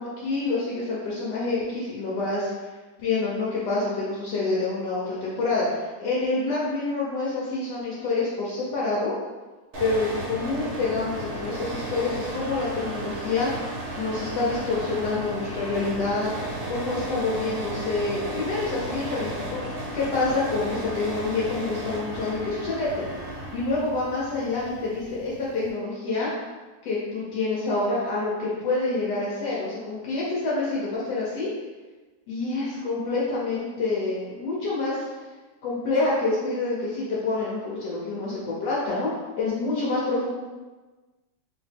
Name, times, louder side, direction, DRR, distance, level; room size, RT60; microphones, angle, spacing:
voice 1, 0.0-2.7 3.0-9.1 9.8-13.5 14.0-16.3 16.7-23.0 23.5-26.3 26.8-31.5 32.3-35.1 35.6-39.1 39.4-40.3, left 3 dB, 75° left, -6 dB, 1.3 m, -27 dB
sound 1, 9.7-25.7, right 1 dB, 50° right, 0.9 m, -34 dB
3.1 x 2.8 x 3.3 m, 1.2 s
omnidirectional pair, 1.9 m